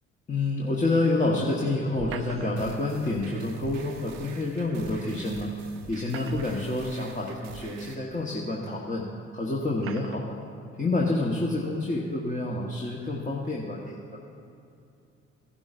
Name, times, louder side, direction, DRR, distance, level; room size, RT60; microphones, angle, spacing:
voice 1, 0.3-5.5 5.9-9.0 9.3-10.4 10.8-14.0, left 2 dB, 20° left, -3 dB, 1.3 m, -28 dB
sound 1, 2.0-2.8 4.5-4.6 5.8-6.8 7.6-7.7 8.7-8.8 9.8-10.3, right 8 dB, 40° right, 0.6 m, -42 dB
sound 2, 2.6-7.9, right 5 dB, 80° right, 0.8 m, -46 dB
15.5 x 11.5 x 2.6 m, 2.6 s
hypercardioid pair, 50°, 36 cm